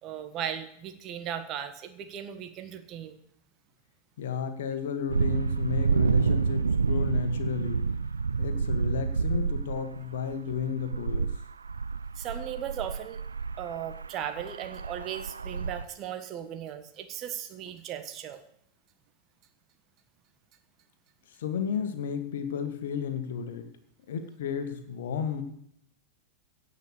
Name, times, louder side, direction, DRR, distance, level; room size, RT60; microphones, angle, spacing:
voice 1, 0.0-3.2 12.2-13.2 13.6-18.4, right 9 dB, 35° right, 9 dB, 1.4 m, -37 dB
voice 2, 4.2-7.9 8.4-11.3 21.4-23.7 24.1-25.4, left 7 dB, 60° left, 8 dB, 1.7 m, -33 dB
sound 1, 5.1-15.8, right 5 dB, 75° right, 0.4 m, -29 dB
16.5 x 5.7 x 8.0 m, 0.70 s
figure-of-eight pair, 90°, 0 cm